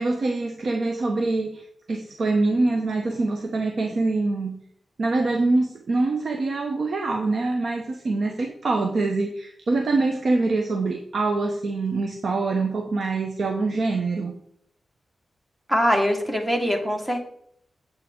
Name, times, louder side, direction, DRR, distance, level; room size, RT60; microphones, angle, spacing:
voice 1, 0.0-4.5 5.0-14.3, right 3 dB, 65° right, 3 dB, 0.9 m, -24 dB
voice 2, 15.7-17.2, equal, 10° right, 3 dB, 1.6 m, -22 dB
8.6 x 8.2 x 3.7 m, 0.70 s
wide cardioid pair, 90°, 0 cm